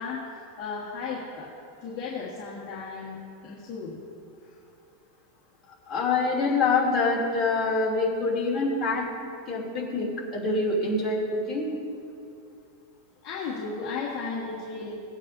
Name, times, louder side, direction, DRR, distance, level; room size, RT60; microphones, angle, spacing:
voice 1, 0.0-4.0 4.4-4.6 13.2-15.0, left 4 dB, 35° left, -6 dB, 1.5 m, -35 dB
voice 2, 5.9-9.1 9.5-11.7, left 3 dB, 15° left, -6 dB, 2.9 m, -25 dB
18.0 x 8.9 x 2.7 m, 2.5 s
supercardioid pair, 165°, 0 cm